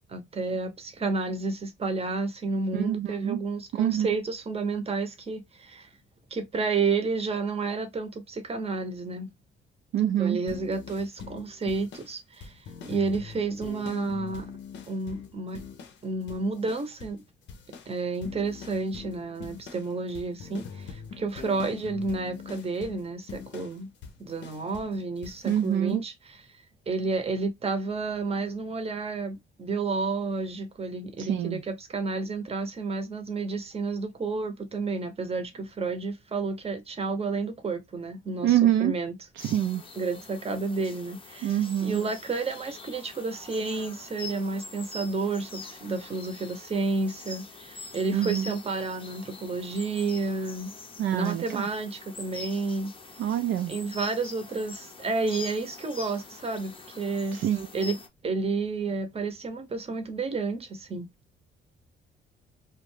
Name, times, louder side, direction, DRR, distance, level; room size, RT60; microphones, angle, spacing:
voice 1, 0.1-5.9 6.3-9.3 10.0-14.5 14.9-15.6 16.0-17.2 17.9-23.9 24.2-26.5 26.9-39.2 40.0-50.7 51.1-52.9 53.7-57.4 57.7-58.0 58.2-61.1, right 3 dB, 30° right, 0.7 m, -31 dB
voice 2, 2.7-3.4 3.8-4.1 9.9-10.4 25.4-26.0 31.3-31.6 38.4-38.9 39.4-39.8 41.4-42.0 48.1-48.5 51.0-51.7 53.2-53.7 57.3-57.7, right 11 dB, 70° right, 0.4 m, -25 dB
sound 1, 10.5-16.0 16.3-17.2 17.5-24.9 25.2-25.7, left 6 dB, 65° left, 0.7 m, -43 dB
sound 2, 39.4-58.1, left 3 dB, 25° left, 0.6 m, -44 dB
2.4 x 2.2 x 3.2 m
cardioid pair, 90°, 20 cm